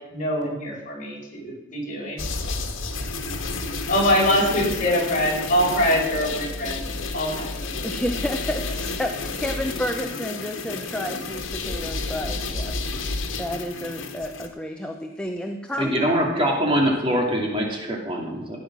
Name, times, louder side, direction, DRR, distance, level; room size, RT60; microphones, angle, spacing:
voice 1, 0.0-2.2 3.9-6.8 7.1-7.6, equal, 40° left, -3 dB, 5.0 m, -23 dB
sound 1, 2.2-14.5, left 3 dB, 75° left, 1.7 m, -31 dB
voice 2, 7.8-16.1, equal, 5° left, 3 dB, 0.8 m, -31 dB
voice 3, 15.8-18.6, equal, 25° right, 0 dB, 2.4 m, -23 dB
15.5 x 9.1 x 6.1 m, 1.0 s
head